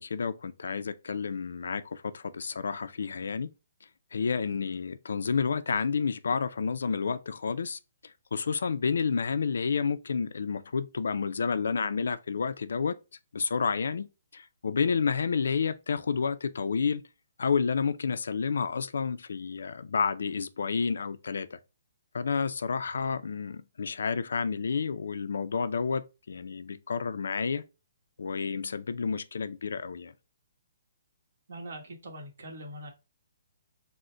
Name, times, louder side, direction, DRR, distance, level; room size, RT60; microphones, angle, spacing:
voice 1, 0.0-3.5 4.1-7.8 8.3-12.9 13.3-14.1 14.3-17.0 17.4-21.6 22.1-27.6 28.2-30.1, left 5 dB, 75° left, 0.4 m, -30 dB
voice 2, 31.5-32.9, right 1 dB, 60° right, 1.2 m, -42 dB
3.8 x 2.1 x 4.3 m
hypercardioid pair, 175°, 0 cm